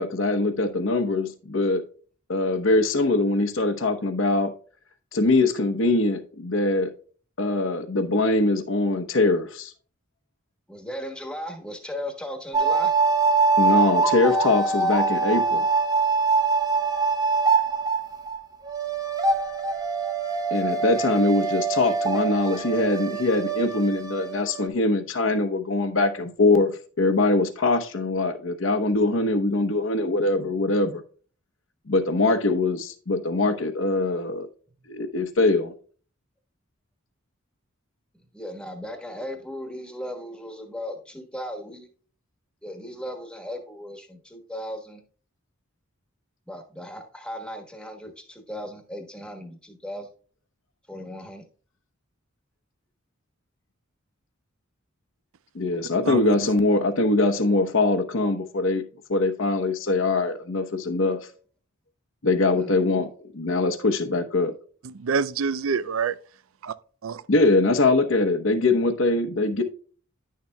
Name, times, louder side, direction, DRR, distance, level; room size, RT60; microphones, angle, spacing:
voice 1, 0.0-1.8 2.3-4.5 5.1-6.9 7.4-9.7 13.6-15.7 20.5-26.7 27.0-31.0 31.9-34.5 34.9-35.7 55.5-61.2 62.2-63.1 63.3-64.5 67.3-69.6, left 2 dB, 65° left, 0.9 m, -22 dB
voice 2, 10.7-12.9 38.3-41.9 42.6-45.0 46.5-50.1 50.9-51.4 62.5-62.7, equal, 5° left, 1.2 m, -36 dB
sound 1, 12.5-18.4 18.7-24.7, right 4 dB, 20° right, 0.7 m, -24 dB
voice 3, 56.0-56.5 64.8-66.2 66.6-66.7 67.0-67.2, right 5 dB, 80° right, 0.4 m, -27 dB
10.5 x 6.6 x 2.2 m
head